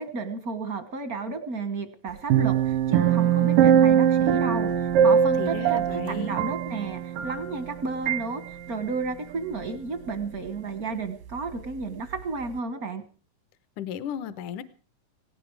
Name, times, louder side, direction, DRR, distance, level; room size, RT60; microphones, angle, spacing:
voice 1, 0.0-13.0, right 4 dB, 65° right, 10 dB, 0.9 m, -32 dB
sound 1, 2.3-7.7 8.1-8.2, right 8 dB, 85° right, 2.7 m, -21 dB
voice 2, 5.4-6.4 13.8-14.6, left 9 dB, 75° left, 14 dB, 2.4 m, -35 dB
18.0 x 17.0 x 4.7 m, 0.38 s
omnidirectional pair, 3.8 m